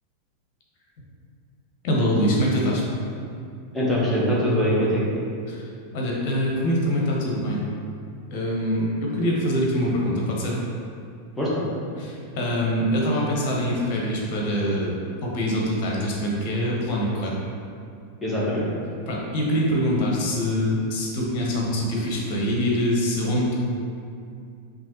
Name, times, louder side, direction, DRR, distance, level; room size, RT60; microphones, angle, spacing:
voice 1, 1.8-2.8 5.5-5.6 5.9-7.6 8.3-10.6 12.0-14.9 15.2-17.3 19.1-23.5, equal, 45° left, -2 dB, 0.9 m, -24 dB
voice 2, 3.7-5.0 11.4-11.6 18.2-18.6, equal, 5° left, -7 dB, 1.1 m, -22 dB
5.4 x 2.6 x 3.0 m, 2.4 s
figure-of-eight pair, 90°, 0 cm